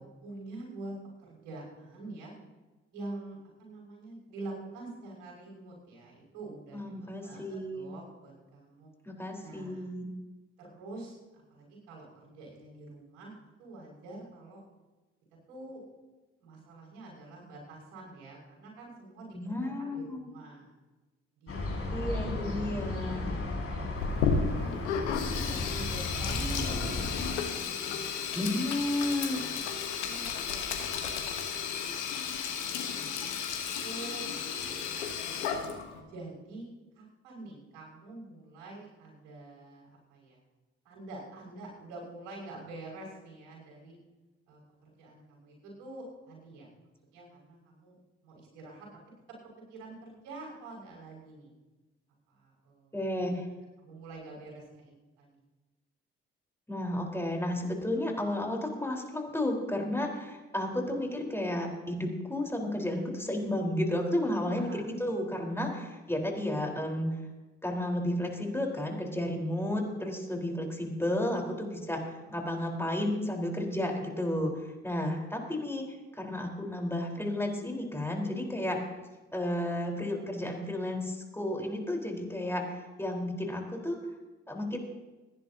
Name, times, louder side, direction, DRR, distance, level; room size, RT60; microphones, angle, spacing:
voice 1, 0.0-2.3 2.9-8.9 9.4-9.9 10.6-14.6 15.5-15.8 16.4-20.8 21.4-22.8 23.2-23.5 24.0-24.8 25.2-28.6 30.0-31.0 31.3-31.5 31.8-32.1 32.8-35.5 36.1-36.7 36.9-40.4 40.8-44.0 44.5-46.7 47.1-47.9 48.2-48.9 49.7-51.5 52.3-53.4 53.8-55.3 60.9-61.0 64.6-64.8 65.9-66.0, right 2 dB, 75° right, -2 dB, 5.8 m, -46 dB
voice 2, 6.7-7.9 9.0-10.0 19.3-20.3 21.9-23.3 28.3-29.4 52.9-53.5 56.7-67.2 67.6-75.8 76.1-78.8 79.3-84.0 84.5-84.8, left 1 dB, 5° left, 1 dB, 4.2 m, -32 dB
sound 1, 21.5-27.3, left 2 dB, 45° left, 4.4 m, -34 dB
Sink (filling or washing), 24.0-36.0, left 6 dB, 85° left, 1.2 m, -33 dB
27.5 x 10.5 x 2.8 m, 1.2 s
hypercardioid pair, 40°, 34 cm